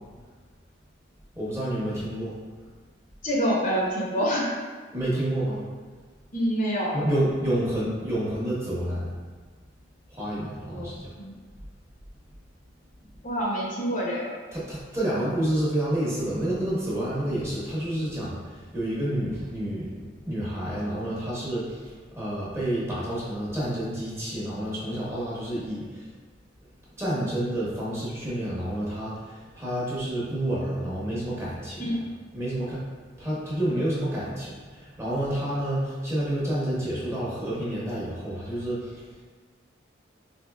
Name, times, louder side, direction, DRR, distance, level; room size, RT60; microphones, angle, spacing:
voice 1, 1.4-2.3 4.9-5.6 6.9-9.1 10.1-11.1 14.5-26.0 27.0-31.9 32.3-32.8 33.2-38.9, right 1 dB, 15° right, -7 dB, 0.8 m, -29 dB
voice 2, 3.2-4.5 6.3-6.9 10.7-11.3 13.2-14.4 31.8-32.0, equal, 45° left, -4 dB, 0.6 m, -27 dB
4.3 x 2.6 x 2.2 m, 1.5 s
head